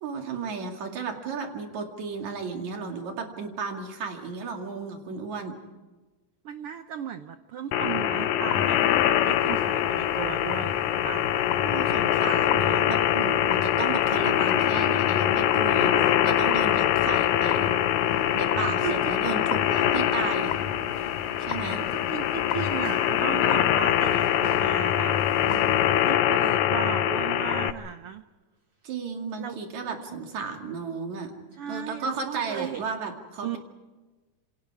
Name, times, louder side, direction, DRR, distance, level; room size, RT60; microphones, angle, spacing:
voice 1, 0.0-5.6 11.6-17.8 18.3-20.5 21.4-21.8 28.8-31.3 31.7-33.6, right 5 dB, 60° right, 3 dB, 3.6 m, -34 dB
voice 2, 6.4-11.3 18.8-18.9 21.8-28.2 29.4-29.6 31.5-32.8 33.4-33.6, right 9 dB, 85° right, 9 dB, 1.2 m, -36 dB
sound 1, 7.7-27.7, left 11 dB, 70° left, 2.0 m, -23 dB
sound 2, 8.5-26.1, left 2 dB, 40° left, 4.2 m, -47 dB
28.0 x 26.0 x 4.8 m, 1.2 s
omnidirectional pair, 3.7 m